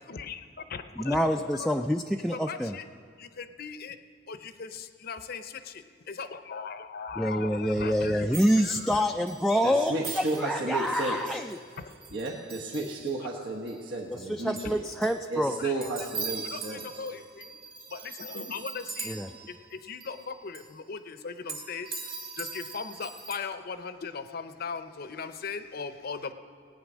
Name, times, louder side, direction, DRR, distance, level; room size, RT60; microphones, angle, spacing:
voice 1, 0.1-1.2 1.7-1.8 2.4-2.8 3.2-4.0 4.3-8.2 8.6-9.0 11.8-11.9 15.6-15.7 16.5-17.6 17.9-19.2 19.5-21.9 22.4-26.3, left 5 dB, 55° left, 10 dB, 0.7 m, -38 dB
voice 2, 1.0-2.8 7.2-11.4 14.3-15.6 19.0-19.3, equal, ahead, 4 dB, 0.3 m, -27 dB
sound 1, 8.3-9.5 9.9-13.3 13.7-13.8 14.1-14.2 14.6-15.2 15.5-19.7 20.0-20.3 20.5-20.6 21.5-23.4, right 5 dB, 55° right, 1.6 m, -41 dB
voice 3, 9.6-11.4 12.1-14.8 15.3-17.1, right 2 dB, 70° right, -2 dB, 1.3 m, -33 dB
18.0 x 9.1 x 6.2 m, 2.3 s
head